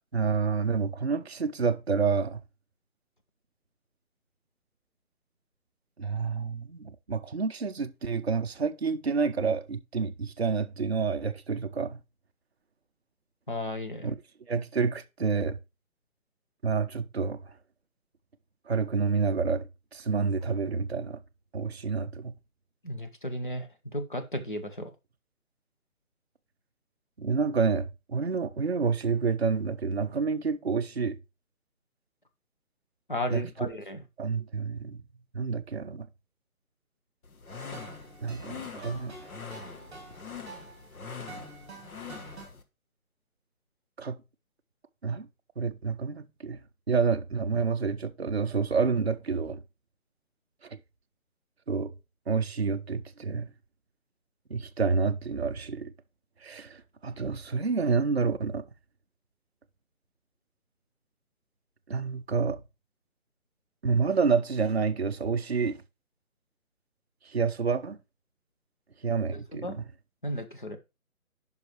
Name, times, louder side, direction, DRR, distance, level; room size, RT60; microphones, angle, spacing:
voice 1, 0.1-2.4 6.0-12.0 14.0-14.2 14.5-15.6 16.6-17.5 18.7-21.2 21.5-22.3 27.2-31.2 33.3-33.7 34.2-35.0 35.3-36.1 38.2-39.3 44.0-44.2 45.0-45.3 45.6-46.6 46.9-49.6 50.6-50.8 51.7-51.9 52.3-53.5 54.5-55.9 56.4-58.7 61.9-62.6 63.8-65.8 67.2-68.0 69.0-69.8, right 5 dB, 50° right, 0.5 m, -28 dB
voice 2, 13.5-14.1 22.8-23.7 23.9-24.9 33.1-34.0 69.6-69.8 70.2-70.8, left 1 dB, 35° left, 0.7 m, -34 dB
sound 1, 37.2-42.6, left 5 dB, 80° left, 1.4 m, -43 dB
sound 2, 37.5-42.5, right 3 dB, 20° right, 2.2 m, -48 dB
9.7 x 5.4 x 3.0 m
hypercardioid pair, 180°, 43 cm